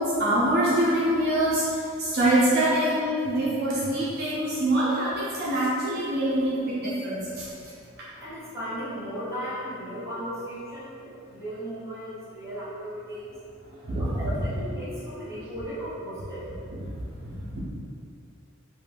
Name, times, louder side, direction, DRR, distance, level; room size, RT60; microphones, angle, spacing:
voice 1, 0.0-7.5 13.8-14.2 16.7-16.8 17.2-17.6, right 1 dB, 50° right, -8 dB, 0.4 m, -25 dB
voice 2, 8.1-13.4 13.9-16.5 16.8-17.0, equal, 15° right, -11 dB, 0.8 m, -36 dB
2.5 x 2.1 x 3.2 m, 2.5 s
head